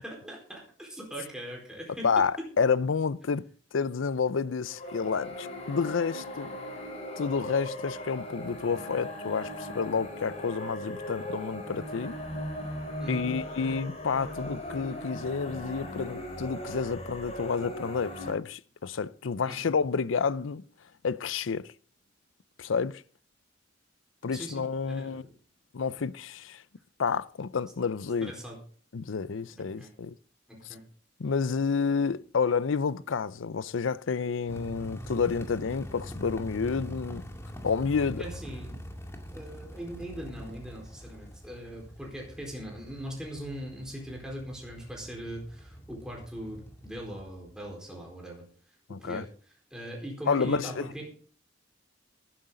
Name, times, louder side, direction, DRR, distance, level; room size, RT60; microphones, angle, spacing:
voice 1, 0.0-2.1 13.0-13.3 19.5-19.6 24.3-25.3 28.2-28.6 29.6-29.9 30.5-30.8 38.2-38.7 39.3-48.4 49.0-49.3 49.7-51.1, right 1 dB, 5° right, 4.4 m, -40 dB
voice 2, 2.0-3.4 3.7-6.5 7.2-12.2 13.1-20.7 21.0-21.7 22.6-23.0 24.2-25.2 25.7-26.6 27.0-28.3 28.9-30.2 31.2-37.2 37.6-38.3 48.9-49.3 50.3-50.8, left 5 dB, 90° left, 0.5 m, -29 dB
sound 1, 4.7-18.3, equal, 35° left, 4.5 m, -38 dB
sound 2, 34.5-47.7, equal, 15° left, 2.2 m, -44 dB
15.0 x 12.0 x 3.9 m
head